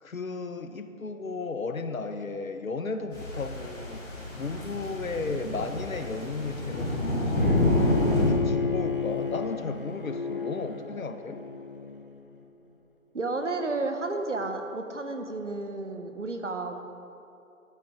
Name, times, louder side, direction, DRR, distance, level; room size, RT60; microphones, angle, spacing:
voice 1, 0.0-4.0 4.3-7.7 8.1-11.4, left 4 dB, 75° left, 8 dB, 0.9 m, -34 dB
sound 1, 3.1-8.3, left 1 dB, 15° left, 2.6 m, -28 dB
Bowed string instrument, 7.3-12.4, left 5 dB, 40° left, 0.7 m, -32 dB
voice 2, 13.1-16.7, right 3 dB, 60° right, 6 dB, 1.1 m, -32 dB
12.5 x 8.6 x 3.7 m, 2.7 s
figure-of-eight pair, 150°, 41 cm